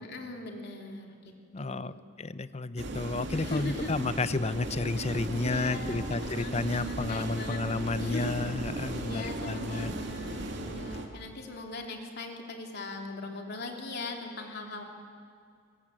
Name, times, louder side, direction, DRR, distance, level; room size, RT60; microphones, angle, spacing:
voice 1, 0.0-2.0 3.3-3.9 5.0-5.1 5.4-7.6 8.0-8.4 8.9-14.8, left 2 dB, 60° left, 2 dB, 3.2 m, -40 dB
voice 2, 1.5-9.9, left 3 dB, 35° left, 15 dB, 0.7 m, -32 dB
sound 1, 2.8-11.1, right 1 dB, 65° right, 2.6 m, -36 dB
22.5 x 21.0 x 9.0 m, 2.2 s
head